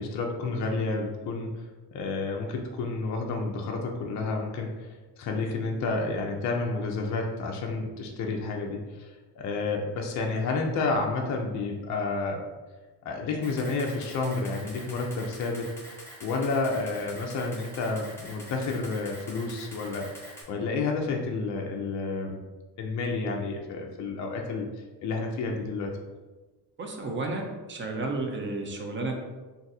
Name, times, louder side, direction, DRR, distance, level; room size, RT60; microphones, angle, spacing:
voice 1, 0.0-1.5 1.9-4.9 5.2-12.4 13.0-20.1 20.5-22.4 22.8-24.7 25.0-25.9, left 3 dB, 45° left, 1 dB, 0.4 m, -30 dB
Camera, 13.4-20.4, equal, 5° left, 0.7 m, -46 dB
voice 2, 26.8-29.2, right 2 dB, 30° right, 2 dB, 0.4 m, -32 dB
2.6 x 2.4 x 4.0 m, 1.2 s
cardioid pair, 150°, 40 cm